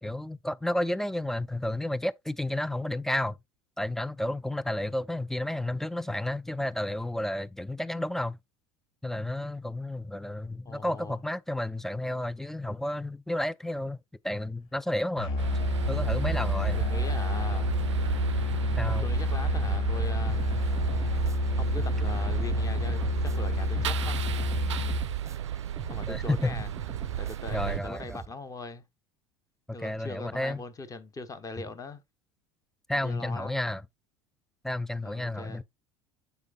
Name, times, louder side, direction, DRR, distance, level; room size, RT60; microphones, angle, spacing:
voice 1, 0.0-3.4 3.8-8.4 9.0-14.0 14.2-15.4 15.9-16.8 18.8-19.1 26.1-26.6 27.5-28.2 29.8-30.6 32.9-33.8 34.6-35.6, left 1 dB, ahead, 0.4 m, -31 dB
voice 2, 10.6-11.2 16.8-17.7 18.6-20.4 21.6-24.3 25.3-25.4 25.8-26.7 27.2-28.9 29.7-32.0 33.0-33.6 35.0-35.6, left 3 dB, 25° left, 1.2 m, -41 dB
Musical instrument, 15.2-25.1, left 2 dB, 55° left, 2.0 m, -29 dB
sound 1, 15.4-27.8, right 11 dB, 75° right, 0.4 m, -33 dB
sound 2, 20.3-28.3, right 6 dB, 20° right, 0.8 m, -43 dB
8.2 x 6.9 x 2.4 m
figure-of-eight pair, 70°, 15 cm